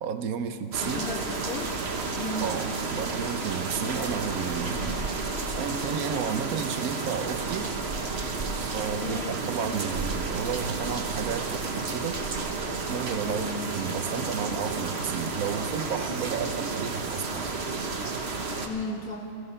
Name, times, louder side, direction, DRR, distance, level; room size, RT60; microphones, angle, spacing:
voice 1, 0.0-1.1 2.4-5.0 5.5-7.8 8.6-12.2 12.9-13.4 13.7-17.5, right 7 dB, 85° right, 9 dB, 1.3 m, -32 dB
sound 1, 0.7-18.7, right 3 dB, 50° right, 1.3 m, -31 dB
voice 2, 0.8-1.7 2.2-2.5 9.0-9.4 13.2-13.7 18.6-19.3, left 2 dB, 80° left, 0 dB, 2.4 m, -35 dB
17.0 x 14.5 x 5.6 m, 2.4 s
omnidirectional pair, 1.5 m